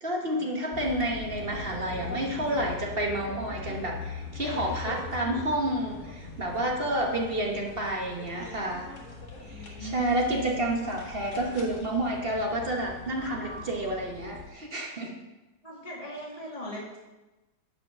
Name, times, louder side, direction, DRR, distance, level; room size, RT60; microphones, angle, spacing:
voice 1, 0.0-8.9 9.4-15.1, right 1 dB, 35° right, 0 dB, 1.2 m, -30 dB
sound 1, 0.7-14.5, left 3 dB, 45° left, 1.7 m, -41 dB
voice 2, 9.4-10.4 15.6-17.0, left 1 dB, 20° left, -5 dB, 2.3 m, -40 dB
9.9 x 5.0 x 6.6 m, 1.1 s
omnidirectional pair, 1.9 m